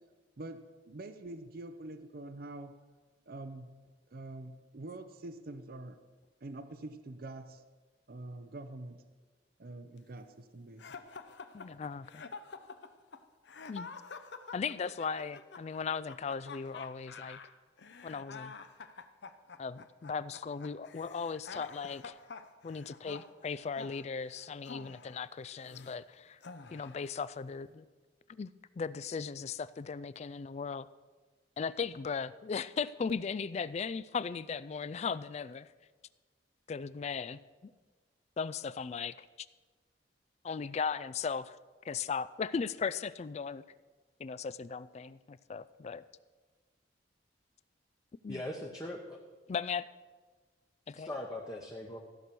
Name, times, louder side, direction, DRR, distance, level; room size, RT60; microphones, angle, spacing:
voice 1, 0.4-2.7 3.3-3.7 4.1-6.0 6.4-7.6 8.1-9.0 9.6-10.8, right 2 dB, 55° right, 10 dB, 0.6 m, -45 dB
sound 1, 10.8-26.0 26.4-27.1, left 4 dB, 65° left, 0.7 m, -48 dB
voice 2, 11.5-12.2 13.7-13.9 14.5-17.4 18.0-18.5 19.6-22.2 22.6-26.4 26.7-27.9 28.3-28.5 28.8-30.9 31.6-35.7 36.7-37.4 38.4-39.3 40.4-41.6 41.8-43.6 44.2-46.0 48.2-48.4 49.5-49.8 50.9-51.1, left 5 dB, 35° left, 17 dB, 0.3 m, -37 dB
voice 3, 48.3-49.2 50.9-52.0, left 1 dB, 20° left, -1 dB, 0.9 m, -40 dB
14.5 x 6.1 x 6.9 m, 1.4 s
head